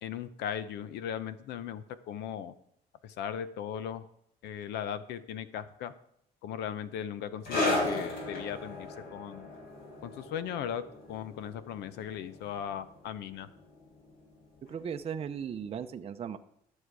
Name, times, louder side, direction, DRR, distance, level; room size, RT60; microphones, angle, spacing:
voice 1, 0.0-2.5 3.0-4.1 4.4-5.9 6.4-9.5 10.0-13.5, left 9 dB, 80° left, 14 dB, 0.7 m, -38 dB
sound 1, 7.4-14.4 14.7-14.9 15.7-15.8, left 2 dB, 65° left, 4.0 m, -36 dB
voice 2, 14.6-16.4, right 7 dB, 35° right, 7 dB, 0.6 m, -37 dB
12.5 x 6.3 x 4.8 m, 0.71 s
cardioid pair, 110°, 17 cm